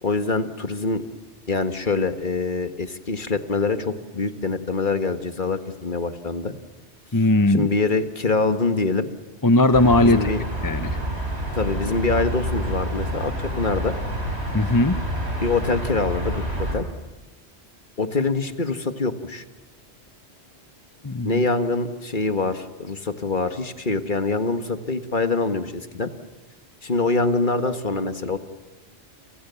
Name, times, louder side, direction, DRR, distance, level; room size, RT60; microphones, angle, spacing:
voice 1, 0.0-1.0 1.5-6.5 7.5-9.1 10.0-10.4 11.5-13.9 15.4-16.9 18.0-19.4 21.2-26.1 26.8-28.4, left 3 dB, 45° left, 8 dB, 1.8 m, -24 dB
voice 2, 7.1-7.7 9.4-10.3 10.6-11.0 14.5-15.0 21.0-21.4, left 2 dB, 20° left, 10 dB, 0.9 m, -18 dB
sound 1, 9.7-16.8, right 1 dB, 65° right, 6.2 m, -28 dB
29.5 x 27.5 x 7.1 m, 1.1 s
omnidirectional pair, 1.2 m